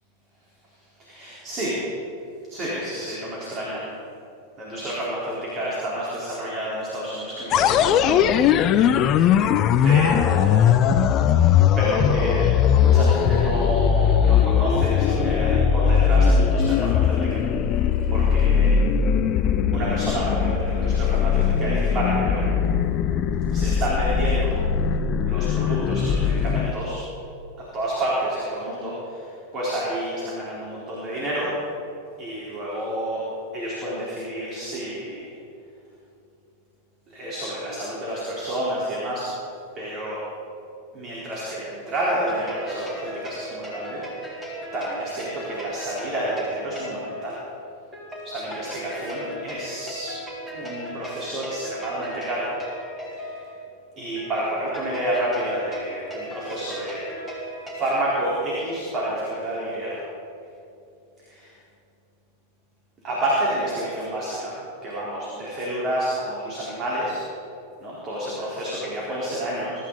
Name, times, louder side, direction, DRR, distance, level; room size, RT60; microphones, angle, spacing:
voice 1, 1.0-1.7 2.5-3.8 4.6-8.2 9.8-10.6 11.8-17.4 18.1-18.7 19.7-22.5 23.5-24.6 25.2-27.0 27.6-31.5 32.2-33.2 33.5-35.3 37.1-39.3 39.7-40.2 40.9-44.4 44.7-47.4 48.2-50.1 50.5-52.5 53.1-53.4 54.0-57.0 57.7-60.0 61.3-61.5 63.0-64.5 64.8-67.2 67.8-69.7, right 1 dB, 30° right, -6 dB, 4.4 m, -29 dB
sound 1, 7.5-26.7, left 8 dB, 35° left, 0.7 m, -20 dB
sound 2, 42.1-58.0, right 1 dB, 5° right, 4.4 m, -37 dB
23.5 x 13.5 x 4.2 m, 2.7 s
figure-of-eight pair, 90°, 0 cm